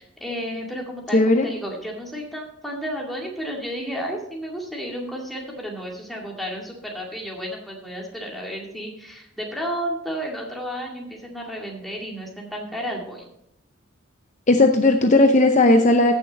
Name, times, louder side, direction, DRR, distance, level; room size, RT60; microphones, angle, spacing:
voice 1, 0.0-13.3, equal, ahead, -2 dB, 2.2 m, -32 dB
voice 2, 1.1-1.5 14.5-16.1, left 2 dB, 35° left, 5 dB, 0.7 m, -16 dB
15.0 x 6.6 x 4.1 m, 0.75 s
head